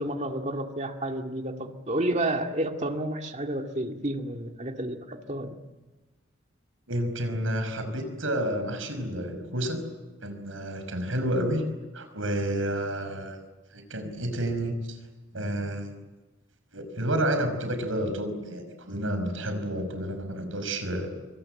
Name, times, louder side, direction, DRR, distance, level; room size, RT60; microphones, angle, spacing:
voice 1, 0.0-5.6, right 1 dB, 35° right, 4 dB, 2.2 m, -30 dB
voice 2, 6.9-9.8 10.2-11.6 11.9-13.4 13.7-15.0 15.3-15.9 16.7-21.1, right 1 dB, 80° right, 8 dB, 5.4 m, -30 dB
26.0 x 24.5 x 7.8 m, 1.2 s
head